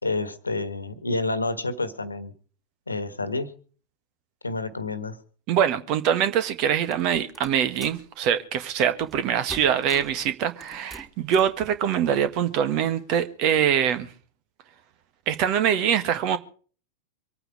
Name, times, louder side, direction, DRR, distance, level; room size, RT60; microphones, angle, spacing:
voice 1, 0.0-2.3 2.9-3.5 4.4-5.2, left 2 dB, 80° left, 1.5 m, -29 dB
voice 2, 5.5-14.1 15.3-16.4, right 9 dB, 40° right, 1.6 m, -23 dB
sound 1, 6.9-8.1 9.0-9.2 9.5-10.2 10.6-11.6, right 2 dB, 15° right, 3.1 m, -44 dB
25.0 x 9.0 x 5.0 m
figure-of-eight pair, 90°, 0 cm